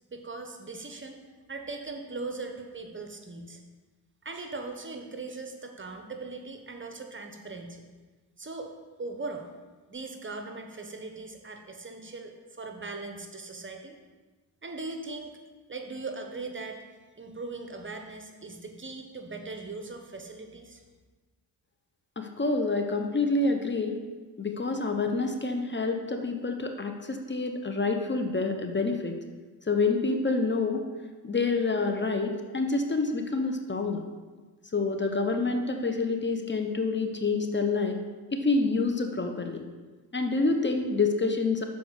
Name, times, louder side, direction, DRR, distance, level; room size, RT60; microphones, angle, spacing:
voice 1, 0.1-1.2 1.5-3.6 4.2-7.8 8.4-8.7 9.0-9.5 9.9-14.0 14.6-15.4 15.7-16.8 17.2-20.8, right 3 dB, 30° right, 4 dB, 1.0 m, -39 dB
voice 2, 22.2-24.0 24.4-29.2 29.7-30.8 31.2-34.0 34.7-38.0 38.3-39.6 40.1-41.7, left 3 dB, 30° left, 5 dB, 0.9 m, -27 dB
6.8 x 4.6 x 6.5 m, 1.3 s
cardioid pair, 65°, 40 cm